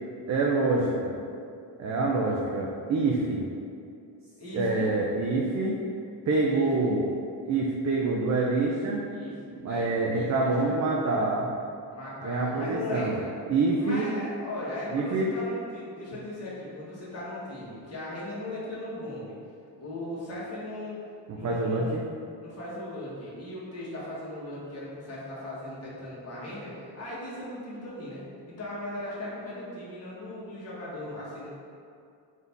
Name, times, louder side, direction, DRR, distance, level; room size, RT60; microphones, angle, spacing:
voice 1, 0.3-1.1 1.8-3.5 4.5-5.8 6.3-7.1 7.5-9.0 9.5-11.5 12.2-13.2 13.5-14.1 14.9-15.3 21.3-22.0, right 3 dB, 40° right, -2 dB, 0.4 m, -26 dB
voice 2, 4.4-4.9 6.4-7.0 9.1-9.4 9.6-10.7 11.9-13.3 13.8-19.4 19.8-21.0 21.3-22.0 22.4-31.5, left 1 dB, 35° left, -8 dB, 1.5 m, -38 dB
3.8 x 2.7 x 3.5 m, 2.4 s
cardioid pair, 80°, 45 cm